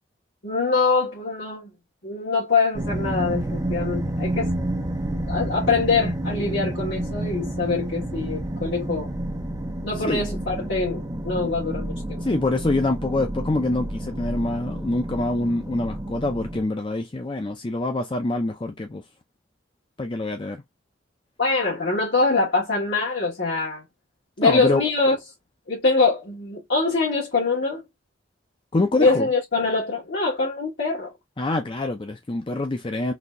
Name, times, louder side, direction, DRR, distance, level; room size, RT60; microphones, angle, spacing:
voice 1, 0.4-1.7 2.0-4.5 5.3-9.1 9.8-12.2 21.4-23.9 24.4-25.1 25.7-27.8 28.9-31.1, left 3 dB, 65° left, 1.8 m, -24 dB
sound 1, 2.7-16.6, right 1 dB, 20° right, 0.6 m, -30 dB
voice 2, 12.2-19.0 20.0-20.6 24.4-24.8 28.7-29.3 31.4-33.1, left 2 dB, 25° left, 0.4 m, -25 dB
4.0 x 2.8 x 2.5 m
head